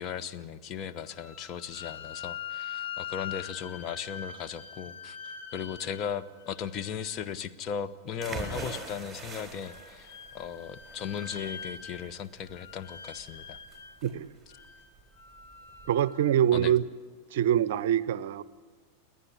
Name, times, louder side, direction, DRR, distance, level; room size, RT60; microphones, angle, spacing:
voice 1, 0.0-13.6 16.5-16.7, left 8 dB, 35° left, 10 dB, 1.0 m, -37 dB
sound 1, 1.1-7.3 8.3-9.1 9.6-12.2 12.5-14.0 14.5-16.5, left 8 dB, 60° left, 2.0 m, -43 dB
sound 2, 8.2-15.9, right 4 dB, 5° right, 3.6 m, -43 dB
voice 2, 14.0-14.3 15.9-16.8 17.3-18.4, right 10 dB, 55° right, 19 dB, 0.6 m, -25 dB
29.0 x 10.5 x 9.9 m, 1.5 s
figure-of-eight pair, 90°, 0 cm